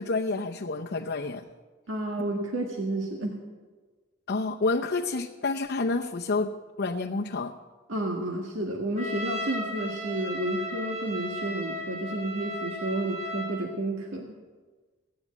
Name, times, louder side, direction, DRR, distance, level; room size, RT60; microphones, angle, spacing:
voice 1, 0.0-1.5 2.2-2.3 4.3-7.5, left 3 dB, 55° left, 1 dB, 0.7 m, -29 dB
voice 2, 1.9-3.4 7.9-14.4, right 1 dB, 75° right, 1 dB, 1.7 m, -31 dB
Trumpet, 9.0-13.7, equal, 35° right, 3.7 m, -36 dB
16.0 x 10.0 x 8.4 m, 1.3 s
head